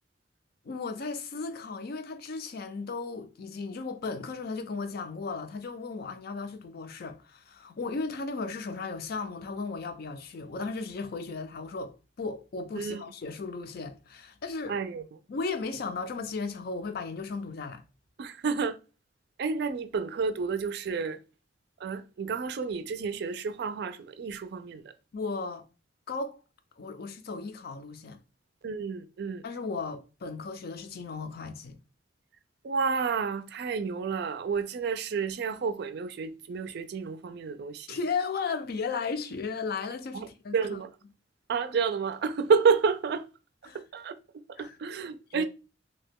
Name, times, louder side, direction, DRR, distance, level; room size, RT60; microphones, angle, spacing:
voice 1, 0.6-14.8 15.3-17.8 25.1-25.6 26.1-26.4 26.8-28.2 29.4-31.8 37.9-40.5 43.7-43.8 44.6-44.7 45.3-45.5, left 4 dB, 55° left, 0.4 m, -35 dB
voice 2, 14.7-15.0 18.2-18.8 19.4-21.2 21.8-24.9 28.6-29.4 32.6-38.0 40.1-40.3 40.5-40.9 41.5-43.3 43.7-44.2 44.6-45.5, right 5 dB, 65° right, 0.4 m, -30 dB
2.8 x 2.2 x 3.4 m
head